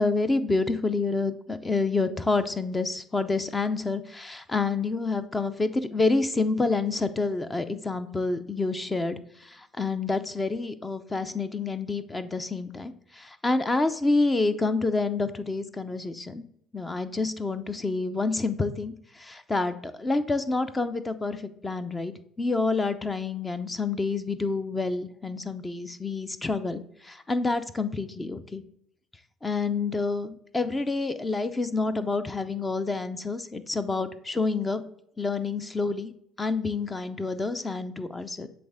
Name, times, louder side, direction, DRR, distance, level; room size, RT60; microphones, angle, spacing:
voice 1, 0.0-16.5 16.7-28.6 29.4-34.8 35.2-36.1 36.4-38.5, left 3 dB, 20° left, 11 dB, 0.6 m, -28 dB
7.7 x 3.4 x 3.5 m, 0.72 s
supercardioid pair, 90°, 0 cm